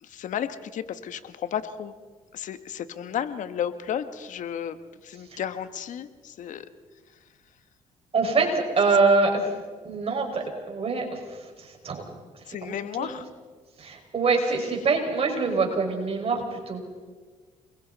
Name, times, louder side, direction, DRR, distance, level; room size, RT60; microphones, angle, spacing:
voice 1, 0.0-1.9 2.3-6.7 12.5-13.2, left 9 dB, 65° left, 11 dB, 1.4 m, -33 dB
voice 2, 8.1-9.5 9.8-12.0 12.5-13.1 13.8-16.8, right 4 dB, 45° right, 2 dB, 5.5 m, -25 dB
29.5 x 22.0 x 4.1 m, 1.5 s
supercardioid pair, 75°, 14 cm